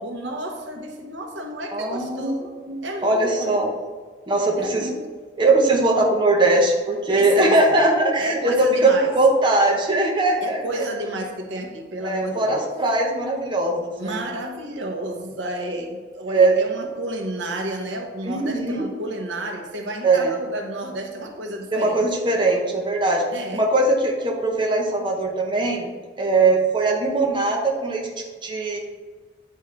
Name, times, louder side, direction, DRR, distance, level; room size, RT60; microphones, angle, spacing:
voice 1, 0.0-2.5 2.8-3.6 4.6-5.0 7.1-7.8 8.2-9.1 10.4-12.7 14.0-22.0 23.3-23.7, right 1 dB, 90° right, 2 dB, 1.0 m, -31 dB
voice 2, 1.7-2.4 2.6-3.7 4.3-4.9 5.4-10.8 12.0-14.2 16.3-16.5 18.2-18.9 20.0-20.3 21.7-23.3 23.5-25.9 26.2-28.1 28.4-28.8, right 2 dB, 25° right, -1 dB, 0.8 m, -20 dB
9.8 x 3.6 x 3.2 m, 1.5 s
head